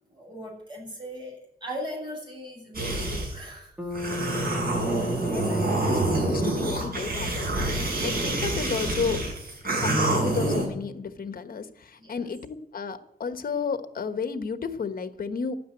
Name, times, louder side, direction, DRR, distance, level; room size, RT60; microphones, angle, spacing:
voice 1, 0.1-3.8 4.8-5.2 12.0-12.2, equal, 30° right, -1 dB, 7.9 m, -39 dB
sound 1, 2.7-3.4 3.9-10.6, right 2 dB, 65° right, 6.3 m, -27 dB
Bass guitar, 3.8-8.1, left 2 dB, 5° right, 1.8 m, -38 dB
voice 2, 5.0-9.2 9.8-15.6, left 5 dB, 60° left, 9 dB, 1.3 m, -32 dB
12.5 x 9.4 x 9.0 m, 0.78 s
wide cardioid pair, 145°, 17 cm